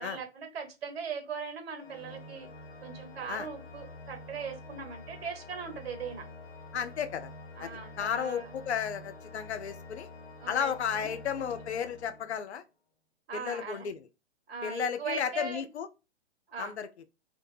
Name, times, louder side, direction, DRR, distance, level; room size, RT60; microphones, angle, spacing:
voice 1, 0.0-2.5 2.8-6.3 7.6-8.5 10.4-11.5 13.3-13.9 14.5-15.6 16.5-16.8, right 5 dB, 60° right, 1.0 m, -39 dB
Organ, 1.8-12.6, left 2 dB, 65° left, 1.0 m, -48 dB
voice 2, 6.7-7.3 7.6-7.7 8.0-10.1 10.5-12.6 13.3-14.1 14.6-15.9 16.6-16.9, left 8 dB, 80° left, 0.5 m, -33 dB
2.1 x 2.0 x 3.2 m
figure-of-eight pair, 120°, 33 cm